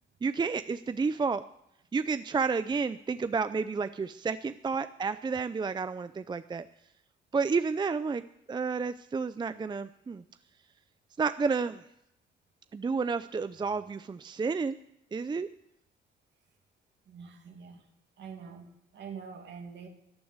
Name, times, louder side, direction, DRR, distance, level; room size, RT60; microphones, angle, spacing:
voice 1, 0.2-1.4 1.9-6.7 7.3-10.2 11.2-11.8 12.7-14.8 15.1-15.5, right 5 dB, 20° right, 0.5 m, -31 dB
voice 2, 17.1-17.9 18.2-19.9, right 6 dB, 65° right, 2.4 m, -45 dB
14.5 x 9.4 x 8.1 m
cardioid pair, 90°, 20 cm